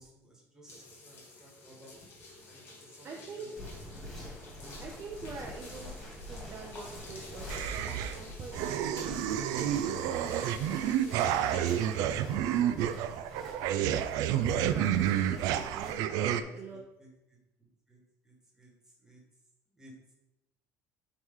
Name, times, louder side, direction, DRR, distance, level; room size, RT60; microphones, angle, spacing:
voice 1, 0.0-2.0 2.5-4.8 15.0-15.6 16.1-17.1 17.9-18.0 18.2-18.7 19.0-19.2 19.7-19.9, equal, 10° right, -3 dB, 1.6 m, -56 dB
sound 1, 0.7-11.8, left 1 dB, 40° left, 1.6 m, -49 dB
voice 2, 3.0-3.5 4.8-6.0 6.3-13.1 14.4-16.8, right 4 dB, 35° right, 0 dB, 0.7 m, -45 dB
sound 2, 3.6-15.9, left 1 dB, 5° left, 2.3 m, -46 dB
sound 3, 7.5-8.2 8.5-16.4, right 10 dB, 75° right, 0.4 m, -30 dB
9.1 x 3.2 x 3.7 m, 0.95 s
cardioid pair, 160°, 6 cm